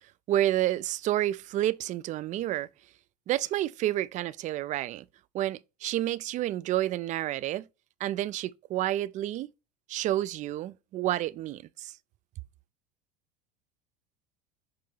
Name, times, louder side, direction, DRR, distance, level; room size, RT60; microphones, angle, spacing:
voice 1, 0.3-2.7 3.3-5.0 5.3-7.7 8.0-9.5 9.9-11.9, right 13 dB, 35° right, 0.4 m, -29 dB
6.7 x 2.7 x 5.4 m
hypercardioid pair, 90°, 21 cm